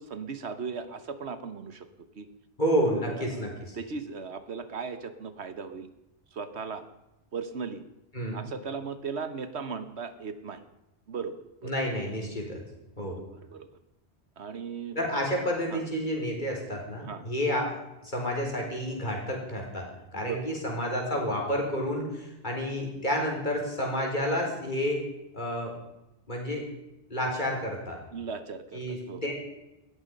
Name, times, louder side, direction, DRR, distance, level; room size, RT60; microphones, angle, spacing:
voice 1, 0.0-1.9 2.1-2.3 2.8-3.4 3.7-5.9 6.3-6.8 7.3-7.8 8.3-10.6 11.1-11.4 11.6-11.8 13.0-13.7 14.4-15.0 15.7-15.8 17.0-17.3 20.1-20.5 28.1-29.4, right 5 dB, 75° right, 11 dB, 1.4 m, -37 dB
voice 2, 2.6-3.8 8.1-8.4 11.6-12.6 13.0-13.2 14.9-25.0 25.3-25.7 26.3-26.7 27.1-28.0 28.7-29.4, equal, 45° left, 0 dB, 4.6 m, -30 dB
18.5 x 14.0 x 5.4 m, 0.94 s
omnidirectional pair, 1.1 m